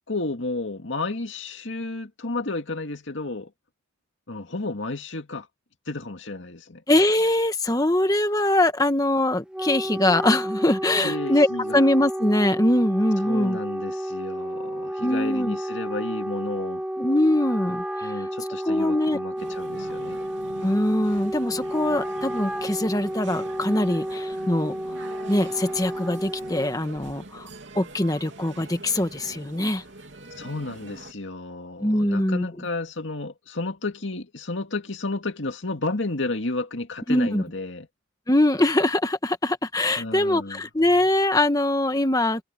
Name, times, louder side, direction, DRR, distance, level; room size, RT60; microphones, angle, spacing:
voice 1, 0.1-3.5 4.3-5.5 5.9-6.8 11.0-11.8 13.2-16.8 18.0-20.2 30.4-37.9 40.0-40.6, left 2 dB, 70° left, 2.2 m, -32 dB
voice 2, 6.9-11.5 11.7-13.6 15.0-15.5 17.0-18.1 18.6-19.2 20.6-24.7 25.3-27.5 27.7-29.8 31.8-32.5 37.1-37.4 38.3-42.4, left 1 dB, 20° left, 1.4 m, -22 dB
Wind instrument woodwind instrument, 9.3-26.8, equal, 5° right, 0.6 m, -31 dB
sound 1, 19.4-31.1, right 2 dB, 65° right, 3.5 m, -43 dB
head